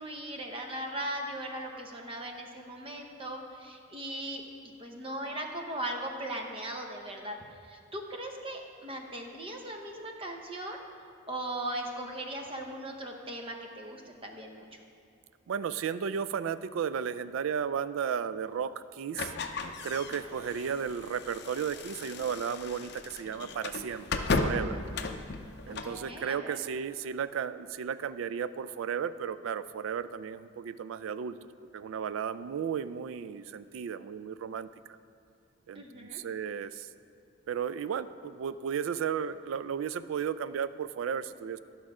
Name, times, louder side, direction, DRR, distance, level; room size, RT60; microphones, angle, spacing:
voice 1, 0.0-4.4 4.8-7.4 7.7-10.8 11.3-14.7 25.7-26.6 35.7-36.2, right 1 dB, 25° right, 3 dB, 0.8 m, -38 dB
voice 2, 15.5-19.3 19.8-24.8 25.7-31.4 31.7-34.7 35.7-36.9 37.5-41.6, right 7 dB, 75° right, 15 dB, 0.3 m, -34 dB
sound 1, 19.1-26.0, left 3 dB, 55° left, 0.5 m, -35 dB
11.5 x 6.1 x 4.8 m, 2.4 s
head